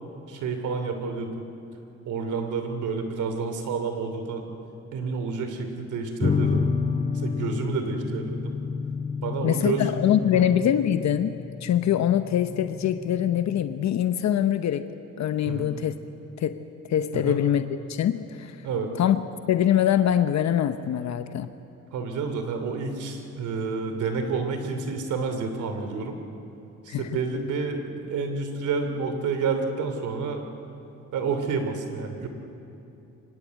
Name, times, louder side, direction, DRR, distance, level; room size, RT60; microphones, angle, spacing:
voice 1, 0.3-1.3 2.0-4.5 4.9-6.6 7.1-8.6 9.2-9.9 10.3-10.4 15.4-15.7 17.1-17.4 18.6-18.9 21.9-26.2 26.8-30.4 31.1-32.3, right 4 dB, 80° right, 6 dB, 2.9 m, -29 dB
sound 1, 6.2-13.9, left 5 dB, 20° left, 1.2 m, -30 dB
voice 2, 9.4-11.4 11.6-14.9 15.2-15.9 16.4-16.6 16.8-17.6 17.9-18.7 19.0-19.2 19.5-21.5 26.9-27.1, left 10 dB, 65° left, 10 dB, 0.9 m, -23 dB
24.5 x 20.5 x 8.3 m, 3.0 s
cardioid pair, 90°, 30 cm